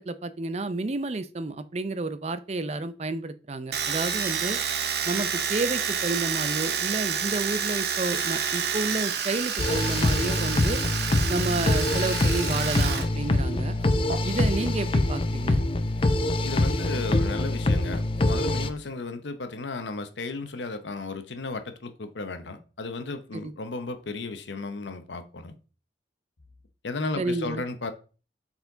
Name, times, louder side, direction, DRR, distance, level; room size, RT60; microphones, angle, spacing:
voice 1, 0.0-4.6 5.0-10.8 11.3-13.7 14.2-15.6 23.3-23.5 27.2-27.6, right 3 dB, 35° right, 0.5 m, -30 dB
Domestic sounds home sounds, 3.7-13.1 13.3-14.2, right 7 dB, 65° right, 0.9 m, -29 dB
sound 1, 9.6-18.7, left 2 dB, 30° left, 0.5 m, -24 dB
voice 2, 16.4-25.6 26.8-27.9, left 3 dB, 90° left, 0.8 m, -34 dB
7.0 x 4.3 x 3.9 m
head